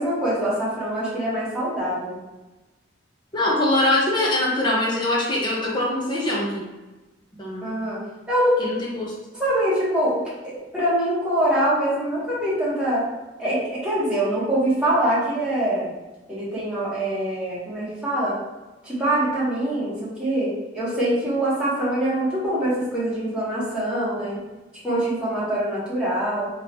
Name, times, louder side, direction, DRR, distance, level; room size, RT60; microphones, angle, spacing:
voice 1, 0.0-2.2 7.6-8.0 8.3-8.5 9.3-13.1 13.4-15.9 16.3-18.4 18.8-24.4 24.8-26.5, right 1 dB, 5° right, -10 dB, 1.4 m, -24 dB
voice 2, 3.3-6.6 7.4-7.7 8.6-9.1, left 1 dB, 25° left, -4 dB, 0.8 m, -23 dB
3.7 x 3.1 x 2.9 m, 1.1 s
head